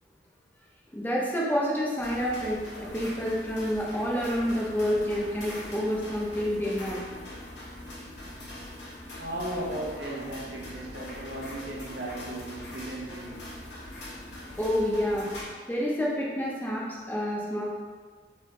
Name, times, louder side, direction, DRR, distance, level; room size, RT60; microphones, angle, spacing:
voice 1, 0.9-7.0 14.6-15.3 15.7-17.6, equal, 10° left, -5 dB, 0.6 m, -28 dB
sound 1, 2.0-15.4, left 1 dB, 70° left, 1.0 m, -42 dB
voice 2, 9.2-13.5, right 1 dB, 75° right, -3 dB, 0.9 m, -36 dB
3.5 x 3.3 x 3.2 m, 1.6 s
head